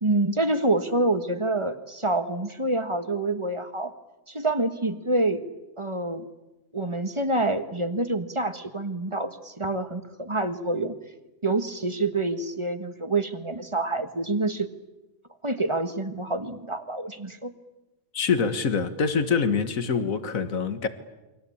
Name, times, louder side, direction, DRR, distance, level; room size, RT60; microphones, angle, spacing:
voice 1, 0.0-3.9 4.3-5.4 5.8-6.2 6.7-11.0 11.4-14.7 15.4-17.5, right 2 dB, 20° right, 1.5 m, -27 dB
voice 2, 18.1-20.9, left 5 dB, 75° left, 2.0 m, -25 dB
29.0 x 24.0 x 8.6 m
omnidirectional pair, 1.4 m